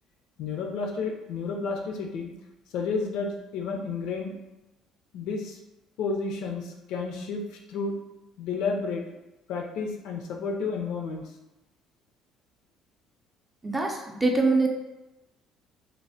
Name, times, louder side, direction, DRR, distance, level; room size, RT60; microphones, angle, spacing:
voice 1, 0.4-2.3 2.7-4.3 5.1-5.6 6.0-7.9 8.4-9.0 9.5-11.2, left 4 dB, 80° left, 2 dB, 0.5 m, -31 dB
voice 2, 13.6-14.7, right 3 dB, 15° right, 1 dB, 0.4 m, -24 dB
3.2 x 2.1 x 2.6 m, 0.97 s
cardioid pair, 120°, 0 cm